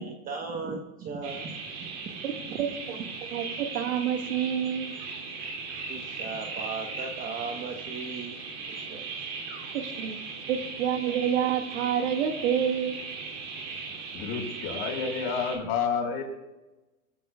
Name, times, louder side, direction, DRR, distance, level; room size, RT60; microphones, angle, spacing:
voice 1, 0.0-2.0 2.3-2.6 5.9-8.4 8.7-9.2 9.8-10.0, right 4 dB, 20° right, 2 dB, 1.1 m, -38 dB
sound 1, 1.2-15.6, right 4 dB, 40° right, 2.9 m, -38 dB
voice 2, 2.6-4.9 9.7-10.2 10.5-13.0, right 9 dB, 55° right, 4 dB, 2.0 m, -28 dB
voice 3, 14.1-16.2, left 6 dB, 35° left, 2 dB, 4.3 m, -30 dB
23.5 x 15.5 x 2.3 m, 1.1 s
hypercardioid pair, 145°, 43 cm